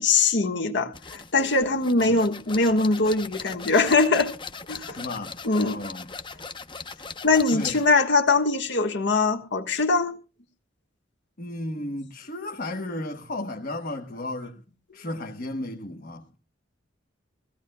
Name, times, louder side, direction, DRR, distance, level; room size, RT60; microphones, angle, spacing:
voice 1, 0.0-4.3 4.7-5.0 5.4-5.8 7.2-10.2, left 3 dB, 65° left, 1.5 m, -22 dB
sound 1, 0.9-7.9, left 5 dB, 25° left, 0.8 m, -40 dB
voice 2, 4.9-6.1 7.5-7.8 11.4-14.6 14.9-16.4, left 1 dB, 50° left, 1.1 m, -34 dB
21.0 x 16.5 x 2.3 m
head